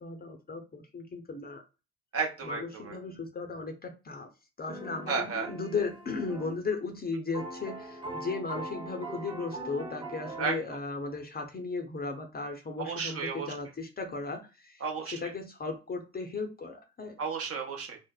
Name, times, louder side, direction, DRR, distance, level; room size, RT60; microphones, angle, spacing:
voice 1, 0.0-1.6 2.4-4.3 4.6-14.8 15.2-17.2, left 4 dB, 25° left, 0.6 m, -36 dB
voice 2, 2.1-3.0 5.1-5.5 10.4-10.8 12.8-13.5 14.8-15.3 17.2-18.0, right 5 dB, 40° right, 0.9 m, -33 dB
sound 1, 4.7-6.6 6.9-7.0 7.3-10.4, right 1 dB, 15° right, 0.8 m, -41 dB
3.2 x 2.0 x 2.3 m
hypercardioid pair, 50°, 36 cm